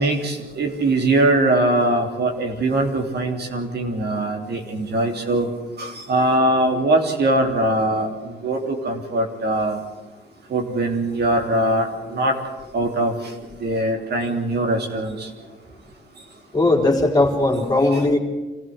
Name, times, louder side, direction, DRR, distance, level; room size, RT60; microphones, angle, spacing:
voice 1, 0.0-5.5 5.8-9.8 10.5-12.4 12.7-13.3 13.6-15.3, right 1 dB, 55° right, 3 dB, 3.5 m, -21 dB
voice 2, 16.5-18.2, left 2 dB, 20° left, 1 dB, 4.0 m, -18 dB
26.0 x 15.0 x 8.0 m, 1.2 s
cardioid pair, 90°, 20 cm